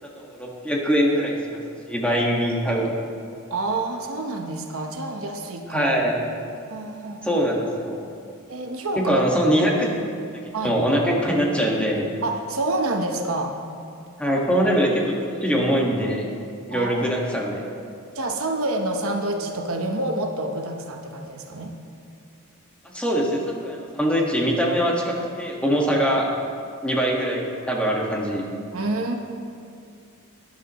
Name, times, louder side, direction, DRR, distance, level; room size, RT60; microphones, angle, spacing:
voice 1, 0.0-2.9 5.7-6.2 7.2-8.0 9.0-10.0 10.6-12.1 14.2-16.3 16.7-17.6 22.8-26.2 26.8-28.4, equal, 5° left, -3 dB, 1.6 m, -23 dB
voice 2, 3.5-5.9 6.7-7.4 8.5-9.2 10.5-10.8 12.2-13.6 16.7-17.1 18.1-21.7 28.7-29.2, right 2 dB, 65° right, 3 dB, 1.0 m, -28 dB
18.5 x 10.5 x 3.1 m, 2.4 s
head